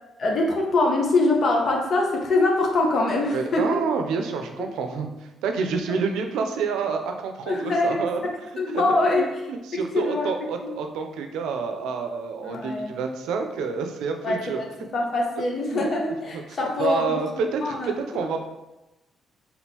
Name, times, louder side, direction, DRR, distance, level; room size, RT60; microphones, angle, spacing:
voice 1, 0.2-3.7 7.5-8.0 8.6-9.2 9.7-10.3 10.6-10.8 12.4-12.9 14.2-14.7 14.9-17.2 17.6-17.9, left 2 dB, 50° left, 0 dB, 1.0 m, -23 dB
voice 2, 3.3-14.6 15.7-15.9 16.2-18.4, right 5 dB, 85° right, 5 dB, 0.5 m, -28 dB
4.3 x 3.7 x 2.9 m, 1.0 s
cardioid pair, 90°, 0 cm